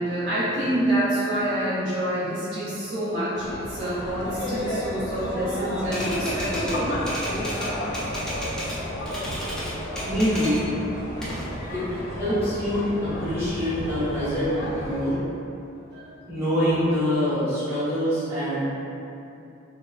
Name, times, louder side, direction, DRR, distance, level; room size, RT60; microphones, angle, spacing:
voice 1, 0.0-6.8 11.1-11.6 15.9-16.1, right 1 dB, 60° right, -10 dB, 0.6 m, -27 dB
sound 1, 3.3-15.1, equal, 90° left, 0.5 m, -32 dB
Typewriter, 5.8-8.8 9.1-10.7 11.0-12.0, equal, 5° left, 0.3 m, -33 dB
voice 2, 10.0-10.6 11.7-15.1 16.3-18.7, equal, 15° right, -15 dB, 1.0 m, -25 dB
3.2 x 2.1 x 2.3 m, 2.8 s
head